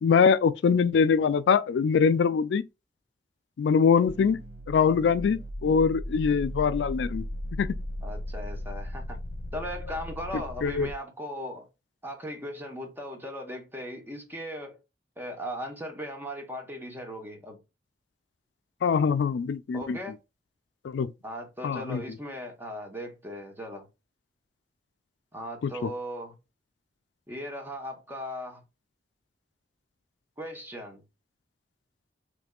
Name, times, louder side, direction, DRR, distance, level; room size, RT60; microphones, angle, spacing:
voice 1, 0.0-2.6 3.6-4.4 4.7-7.2 7.6-7.8 10.6-10.9 18.8-20.0 20.8-21.1 21.6-22.0 25.6-25.7, left 6 dB, 80° left, 0.3 m, -23 dB
sound 1, 4.1-10.9, equal, 50° left, 0.9 m, -37 dB
voice 2, 8.0-9.2 9.5-11.7 12.0-14.8 15.2-17.6 19.7-20.2 21.2-23.9 25.3-26.4 27.3-28.6 30.4-31.0, equal, 10° right, 1.0 m, -38 dB
5.2 x 3.2 x 2.3 m
head